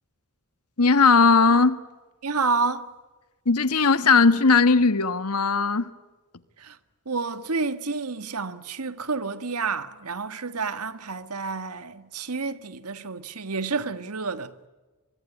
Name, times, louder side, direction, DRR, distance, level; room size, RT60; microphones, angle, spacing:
voice 1, 0.8-1.8 3.4-5.9, left 4 dB, 90° left, 1.5 m, -18 dB
voice 2, 2.2-2.9 6.6-6.8 7.0-14.7, right 4 dB, 90° right, 1.6 m, -29 dB
24.5 x 23.5 x 10.0 m
head